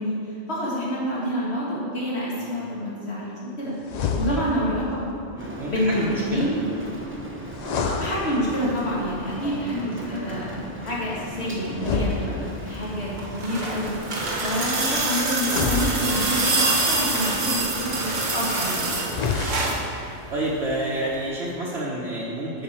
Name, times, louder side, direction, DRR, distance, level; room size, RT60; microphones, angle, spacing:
voice 1, 0.0-3.7 4.2-5.1 5.7-6.6 7.8-10.5 10.8-18.9, equal, 55° left, -6 dB, 2.0 m, -28 dB
sound 1, 3.8-4.8 7.5-8.8 11.7-12.9 15.4-16.7 19.0-20.0, left 4 dB, 75° left, 0.3 m, -28 dB
voice 2, 4.2-4.7 5.3-6.5 9.4-9.6 17.4-17.6 20.3-22.6, right 1 dB, 60° right, -5 dB, 1.1 m, -30 dB
Rain, 5.4-19.3, right 1 dB, 10° right, 0.6 m, -38 dB
sound 2, 13.1-19.9 21.1-21.2, right 2 dB, 80° right, 1.5 m, -25 dB
9.3 x 5.5 x 4.3 m, 2.9 s
omnidirectional pair, 1.3 m